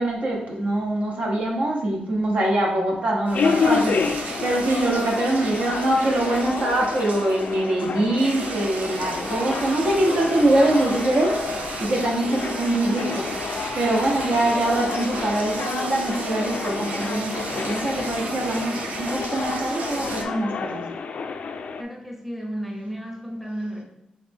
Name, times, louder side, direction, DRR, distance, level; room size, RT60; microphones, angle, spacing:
voice 1, 0.0-20.8, right 1 dB, 60° right, -1 dB, 1.0 m, -23 dB
sound 1, 3.3-21.8, left 5 dB, 60° left, 0.3 m, -29 dB
sound 2, 3.3-20.2, right 3 dB, 80° right, 0.6 m, -35 dB
voice 2, 21.8-23.8, equal, ahead, -2 dB, 0.8 m, -33 dB
4.0 x 3.2 x 3.5 m, 0.84 s
wide cardioid pair, 120°, 3 cm